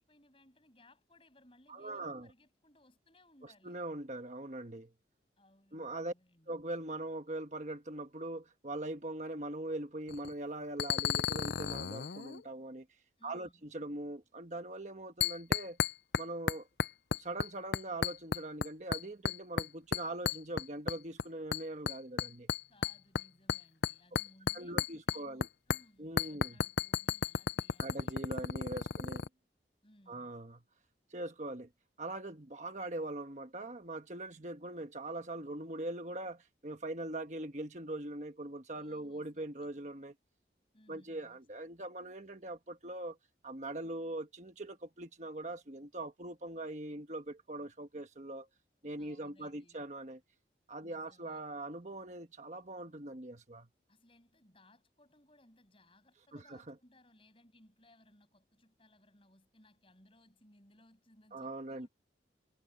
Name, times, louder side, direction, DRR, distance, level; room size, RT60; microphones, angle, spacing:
voice 1, 0.0-3.8 5.4-6.6 13.2-13.6 22.7-29.1 29.8-30.3 38.7-39.7 40.7-41.4 49.0-49.9 50.8-51.4 53.9-61.9, left 1 dB, 30° left, 7.9 m, -64 dB
voice 2, 1.7-2.3 3.4-4.9 5.7-6.1 6.5-12.9 13.2-15.8 16.2-16.7 17.2-22.5 24.5-25.5 26.0-26.6 27.8-29.3 30.1-30.6 31.1-31.7 32.0-40.1 40.9-43.2 43.4-48.5 48.8-50.2 50.7-53.7 56.3-56.7 61.3-61.9, right 2 dB, 40° right, 1.2 m, -42 dB
sound 1, 10.1-10.3 10.8-12.4 15.2-16.2 16.5-17.5 17.7-18.7 18.9-19.7 19.9-21.2 21.5-25.5 25.7-25.8 26.2-29.3, left 6 dB, 65° left, 0.6 m, -33 dB
head